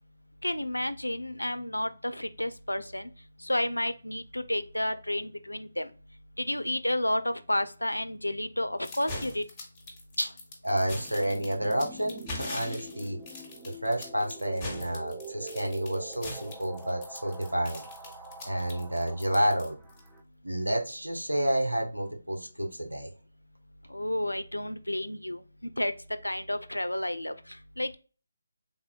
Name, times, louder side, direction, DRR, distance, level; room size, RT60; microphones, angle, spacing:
voice 1, 0.4-3.1 3.4-5.9 6.4-9.4 13.0-13.1 23.9-25.9 26.2-28.0, left 1 dB, 90° left, 12 dB, 0.3 m, -31 dB
sound 1, 8.8-20.1, left 2 dB, 15° left, 0.9 m, -41 dB
voice 2, 10.6-13.2 13.6-17.8 18.4-19.8 20.4-23.1, right 1 dB, 90° right, 2 dB, 0.8 m, -30 dB
sound 2, 10.7-20.2, right 2 dB, 5° right, 0.3 m, -46 dB
3.4 x 2.1 x 2.2 m, 0.35 s
figure-of-eight pair, 150°, 0 cm